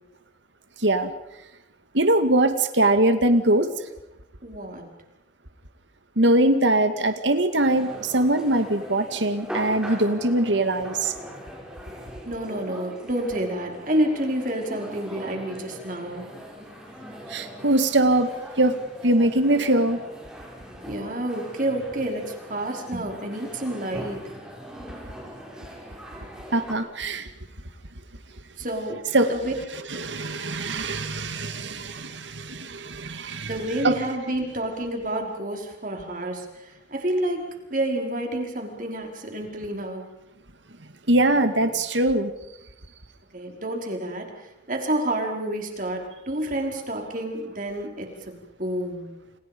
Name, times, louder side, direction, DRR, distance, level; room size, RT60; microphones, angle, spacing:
voice 1, 0.8-1.1 1.9-3.7 6.2-11.1 17.3-18.3 18.6-18.7 19.0-20.0 26.5-27.3 29.1-29.3 29.9-33.5 33.8-33.9 41.1-42.3, right 1 dB, 75° right, 8 dB, 2.1 m, -22 dB
voice 2, 4.4-4.9 12.3-16.3 20.9-24.3 28.6-29.0 29.3-29.5 29.8-29.9 33.4-40.1 43.3-49.2, right 1 dB, 45° right, 2 dB, 5.3 m, -29 dB
sound 1, 7.6-26.7, equal, 5° right, 6.0 m, -41 dB
30.0 x 30.0 x 5.4 m, 0.91 s
head